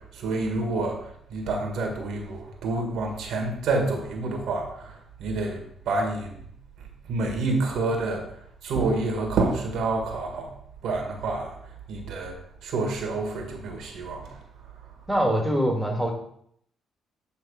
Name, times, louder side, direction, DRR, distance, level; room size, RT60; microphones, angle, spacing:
voice 1, 0.0-6.4 7.1-8.3 8.6-10.5 10.8-11.6 11.9-14.4, right 3 dB, 80° right, 2 dB, 1.6 m, -28 dB
voice 2, 15.1-16.1, equal, 5° right, 1 dB, 1.6 m, -23 dB
8.5 x 3.1 x 4.8 m, 0.67 s
cardioid pair, 90°, 0 cm